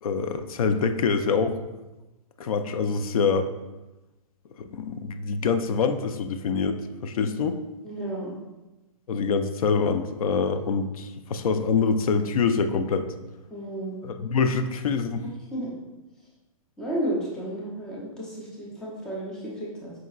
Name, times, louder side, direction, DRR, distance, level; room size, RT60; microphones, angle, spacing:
voice 1, 0.0-1.6 2.4-3.5 4.6-7.6 9.1-13.1 14.0-15.3, left 5 dB, 85° left, 9 dB, 0.4 m, -25 dB
voice 2, 7.8-8.3 13.5-14.0 15.5-15.7 16.8-19.9, right 1 dB, 5° left, -5 dB, 0.4 m, -32 dB
4.8 x 3.5 x 2.3 m, 1.0 s
hypercardioid pair, 170°, 18 cm